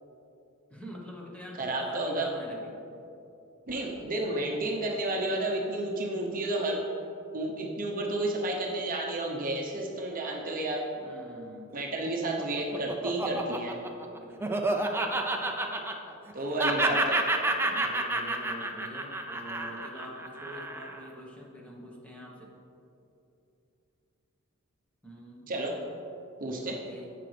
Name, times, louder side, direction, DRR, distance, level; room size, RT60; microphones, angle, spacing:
voice 1, 0.7-2.8 11.0-11.8 14.1-15.1 16.5-16.9 17.6-22.5 25.0-25.5 26.6-27.1, equal, 5° left, -2 dB, 1.1 m, -45 dB
voice 2, 1.6-2.3 3.7-6.8 7.3-10.8 11.7-13.8 16.3-17.2 25.5-25.8 26.4-26.8, right 1 dB, 40° right, 0 dB, 0.8 m, -31 dB
Laughter, 12.1-16.3 16.6-21.0, right 2 dB, 10° right, 0.5 m, -30 dB
10.0 x 7.6 x 3.3 m, 2.7 s
head